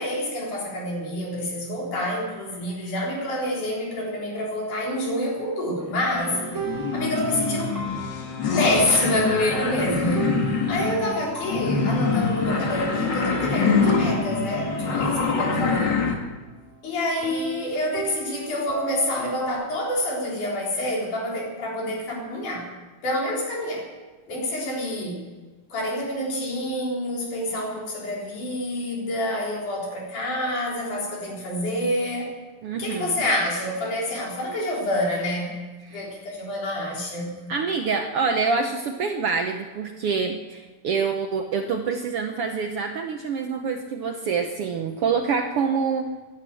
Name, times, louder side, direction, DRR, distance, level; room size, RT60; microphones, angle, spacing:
voice 1, 0.0-6.4 6.9-7.7 8.6-10.4 10.7-16.0 16.8-22.7 23.0-23.9 24.3-25.2 25.7-32.3 32.8-35.6 35.9-37.4, left 1 dB, 75° left, -2 dB, 5.3 m, -27 dB
sound 1, 5.9-16.1, left 5 dB, 45° left, 1.9 m, -25 dB
sound 2, 6.1-16.9 17.2-19.5, right 5 dB, 25° right, 3.1 m, -36 dB
voice 2, 15.0-15.7 32.6-33.2 35.8-36.1 37.5-46.1, right 5 dB, 65° right, 4 dB, 1.5 m, -26 dB
15.0 x 11.5 x 7.6 m, 1.3 s
omnidirectional pair, 3.6 m